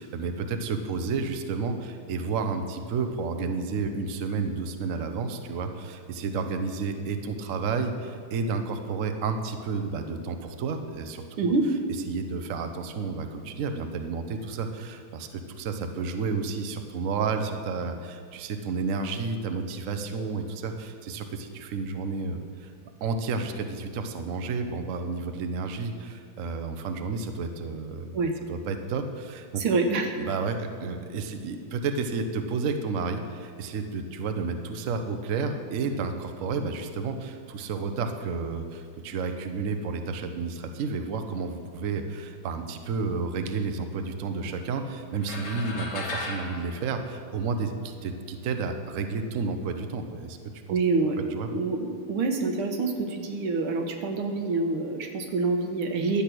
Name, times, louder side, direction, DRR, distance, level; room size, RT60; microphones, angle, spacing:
voice 1, 0.0-11.5 12.1-22.7 23.0-28.2 28.5-29.6 30.2-50.4 50.7-50.8 51.2-51.5, right 4 dB, 60° right, 6 dB, 0.8 m, -31 dB
voice 2, 11.4-11.7 28.1-28.3 29.6-30.2 50.7-51.2 51.5-56.2, right 3 dB, 80° right, 4 dB, 1.9 m, -26 dB
sound 1, 45.2-47.8, left 2 dB, 55° left, 1.7 m, -37 dB
11.5 x 8.3 x 6.1 m, 2.2 s
omnidirectional pair, 2.4 m